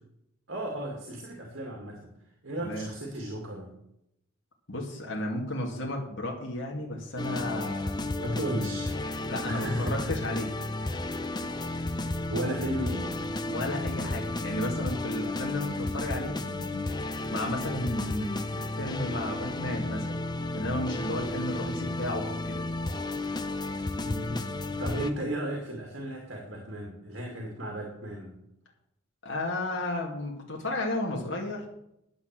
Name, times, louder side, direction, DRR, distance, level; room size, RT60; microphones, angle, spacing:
voice 1, 0.5-2.1 2.4-3.7 8.2-9.0 9.5-10.2 12.3-13.1 24.1-24.4 24.8-28.4, right 1 dB, 60° right, 0 dB, 2.3 m, -34 dB
voice 2, 2.6-2.9 4.7-8.1 9.3-10.5 13.5-16.9 17.3-20.2 20.5-22.6 29.2-31.7, left 1 dB, 65° left, -1 dB, 2.3 m, -33 dB
sound 1, 7.2-25.1, left 2 dB, 20° left, 0.6 m, -33 dB
10.5 x 7.9 x 7.6 m, 0.80 s
head